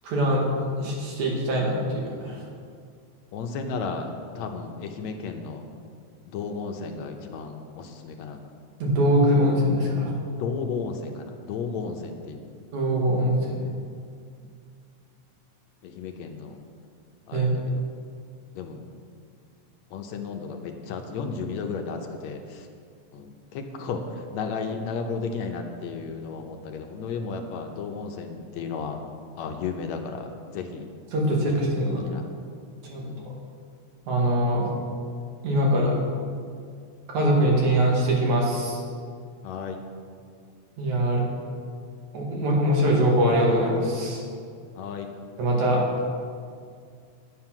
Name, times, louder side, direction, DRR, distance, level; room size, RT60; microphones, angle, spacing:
voice 1, 0.0-0.5 0.8-2.4 8.8-10.1 12.7-13.6 17.3-17.5 31.1-32.0 32.9-33.0 34.1-34.7 35.4-35.9 37.1-38.8 40.8-41.2 42.1-44.2 45.4-45.8, equal, 80° right, -2 dB, 3.4 m, -22 dB
voice 2, 3.3-4.1 4.4-5.6 6.3-8.4 10.3-12.5 15.8-16.6 17.3-17.8 18.5-18.8 19.9-22.7 23.1-29.0 29.4-30.9 32.0-32.3 33.0-33.3 39.4-39.8 44.8-45.1, left 5 dB, 75° left, 4 dB, 2.0 m, -33 dB
9.8 x 9.3 x 5.9 m, 2.2 s
omnidirectional pair, 3.4 m